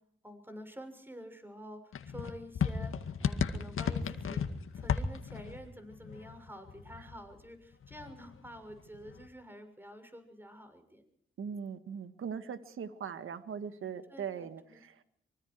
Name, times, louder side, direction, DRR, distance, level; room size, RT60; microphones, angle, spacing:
voice 1, 0.2-4.4 4.7-11.0 14.1-14.8, equal, 10° right, 8 dB, 6.4 m, -49 dB
sound 1, 1.9-7.5 7.7-9.3, left 6 dB, 80° left, 2.0 m, -35 dB
voice 2, 11.4-15.0, right 7 dB, 80° right, 10 dB, 1.7 m, -40 dB
25.0 x 24.0 x 4.7 m, 0.67 s
cardioid pair, 65°, 21 cm